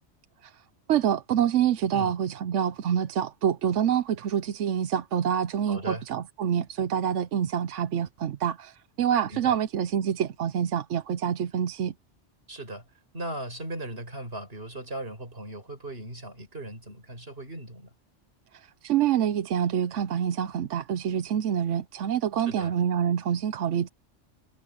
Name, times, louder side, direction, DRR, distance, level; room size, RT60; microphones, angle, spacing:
voice 1, 0.9-11.9 18.8-23.9, right 9 dB, 75° right, 1.0 m, -26 dB
voice 2, 5.7-6.0 9.3-9.6 12.5-12.8 13.1-17.9 22.5-22.7, right 1 dB, 50° right, 5.8 m, -37 dB
omnidirectional pair, 1.3 m